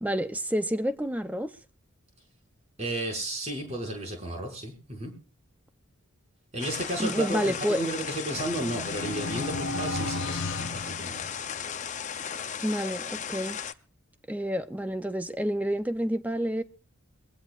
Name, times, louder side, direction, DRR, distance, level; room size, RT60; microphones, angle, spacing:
voice 1, 0.0-1.5 7.0-7.8 12.6-13.6 14.3-16.6, equal, 5° right, 0.6 m, -29 dB
voice 2, 2.8-5.1 6.5-11.2, right 1 dB, 30° right, 5.7 m, -33 dB
sound 1, 6.6-13.7, left 7 dB, 35° left, 0.6 m, -36 dB
sound 2, 7.9-11.8, left 2 dB, 60° left, 0.9 m, -35 dB
23.0 x 16.5 x 2.5 m
head